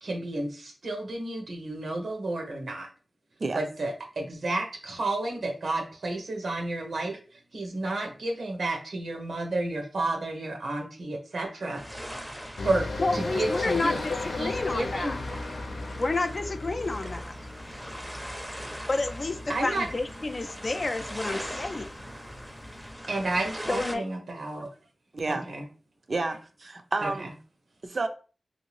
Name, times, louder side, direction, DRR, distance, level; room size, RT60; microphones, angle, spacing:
voice 1, 0.0-2.9 3.5-7.2 7.5-11.8 12.6-12.9 13.1-14.0 14.4-15.2 19.5-19.9 23.1-24.7 25.3-25.6 27.0-27.1, right 2 dB, 85° right, 3 dB, 0.9 m, -31 dB
sound 1, 11.7-23.9, equal, 10° right, 0.6 m, -41 dB
sound 2, 12.6-22.9, left 2 dB, 90° left, 0.7 m, -36 dB
voice 2, 13.0-15.2 16.0-17.3 18.9-21.9 23.7-24.0, left 2 dB, 45° left, 7 dB, 0.3 m, -30 dB
voice 3, 25.1-25.5 26.1-27.3 27.8-28.1, right 3 dB, 55° right, 7 dB, 0.5 m, -30 dB
3.2 x 2.7 x 3.1 m, 0.36 s
wide cardioid pair, 95°, 0 cm